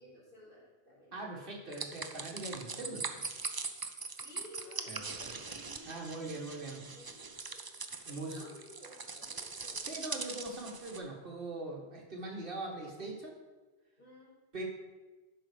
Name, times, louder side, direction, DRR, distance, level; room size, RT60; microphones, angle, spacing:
voice 1, 0.0-1.2 4.2-7.7 8.1-9.9 14.0-14.4, left 1 dB, 55° left, -7 dB, 3.8 m, -55 dB
voice 2, 1.1-3.3 4.9-5.4 5.8-6.8 8.1-8.4 9.7-13.4 14.5-14.6, right 2 dB, 55° right, -1 dB, 1.8 m, -42 dB
sound 1, 1.7-11.0, right 4 dB, 30° right, 0.4 m, -42 dB
11.0 x 5.9 x 4.9 m, 1.2 s
omnidirectional pair, 1.1 m